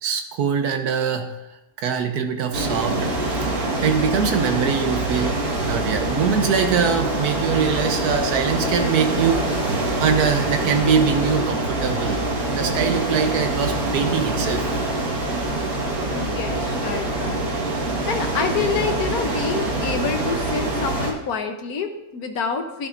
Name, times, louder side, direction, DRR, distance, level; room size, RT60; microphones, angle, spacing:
voice 1, 0.0-3.1 3.4-3.5 3.8-5.4 5.7-9.6 10.0-12.2 12.5-14.7, right 6 dB, 85° right, 5 dB, 1.4 m, -23 dB
sound 1, 2.5-21.1, right 2 dB, 70° right, 2.2 m, -25 dB
voice 2, 16.1-17.5 18.1-22.9, left 5 dB, 75° left, 5 dB, 1.4 m, -27 dB
12.5 x 10.5 x 2.6 m, 0.94 s
omnidirectional pair, 1.6 m